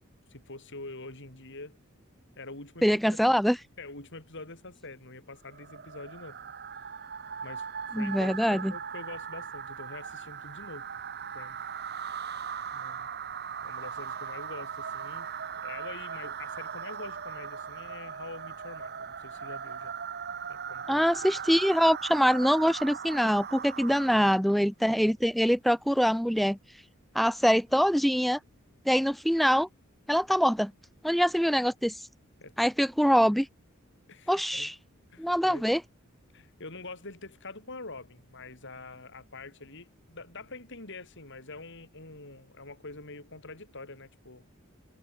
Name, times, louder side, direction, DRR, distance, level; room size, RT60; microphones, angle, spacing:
voice 1, 0.3-1.8 2.4-3.0 3.8-6.4 7.4-10.9 11.3-11.6 12.7-13.1 13.6-15.3 15.6-19.9 20.5-21.1 21.4-21.6 23.9-24.3 32.4-32.7 34.1-34.7 35.1-35.7 36.3-44.4, left 3 dB, 60° left, 7.2 m, -45 dB
voice 2, 2.8-3.6 7.9-8.7 20.9-26.6 27.1-28.4 28.9-29.7 30.1-30.7 31.0-32.0 32.6-33.5 34.3-34.7 35.2-35.8, equal, ahead, 1.2 m, -24 dB
sound 1, 5.5-24.4, right 7 dB, 50° right, 2.5 m, -39 dB
head